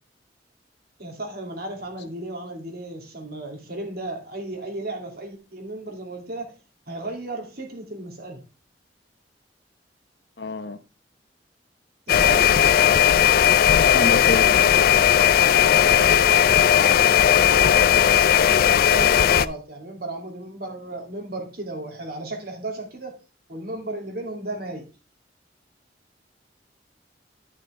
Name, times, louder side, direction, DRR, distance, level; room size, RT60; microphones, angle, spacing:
voice 1, 1.0-6.6 6.9-8.4 12.1-12.6 15.3-18.0 18.7-23.2 23.5-24.8, right 2 dB, 60° right, 2.6 m, -34 dB
voice 2, 10.4-10.8 12.6-13.2 13.8-14.6, left 3 dB, 75° left, 1.0 m, -28 dB
sound 1, 12.1-19.5, left 9 dB, 55° left, 0.4 m, -17 dB
11.5 x 6.4 x 3.5 m
head